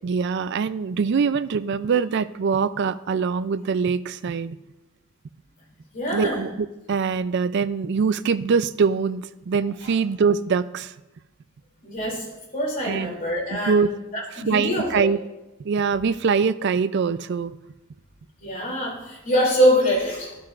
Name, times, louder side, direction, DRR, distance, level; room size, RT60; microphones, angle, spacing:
voice 1, 0.0-4.6 6.1-6.5 6.9-10.9 12.9-13.1 13.7-13.9 14.5-15.2 15.6-17.5, right 5 dB, 55° right, 15 dB, 0.4 m, -23 dB
voice 2, 5.9-6.5 9.8-9.9 11.8-12.3 12.5-15.0 18.4-20.4, equal, 40° left, -3 dB, 2.9 m, -24 dB
12.5 x 12.0 x 2.5 m, 1.0 s
head